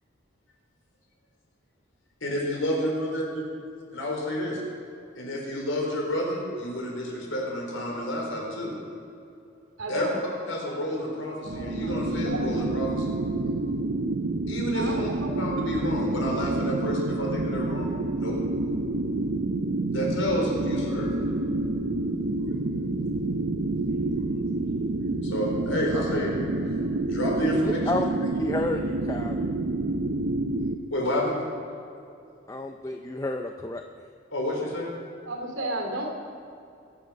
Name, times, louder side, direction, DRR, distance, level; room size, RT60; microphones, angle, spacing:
voice 1, 2.2-3.2 3.9-4.6 5.2-8.7 9.9-10.1 10.5-13.1 14.5-15.1 15.4-17.9 18.2-18.4 19.9-21.1 25.2-26.4 27.0-27.9 30.9-31.3 34.3-34.9, left 1 dB, 70° left, -1 dB, 4.1 m, -29 dB
voice 2, 9.8-10.2 11.5-11.9 12.2-12.4 14.7-15.3 35.3-36.1, right 2 dB, 75° right, 2 dB, 2.8 m, -33 dB
sound 1, 11.4-30.8, right 2 dB, 55° right, 0.6 m, -28 dB
voice 3, 27.5-29.4 32.5-33.8, left 2 dB, 15° left, 4 dB, 0.5 m, -31 dB
22.5 x 8.0 x 6.3 m, 2.6 s
head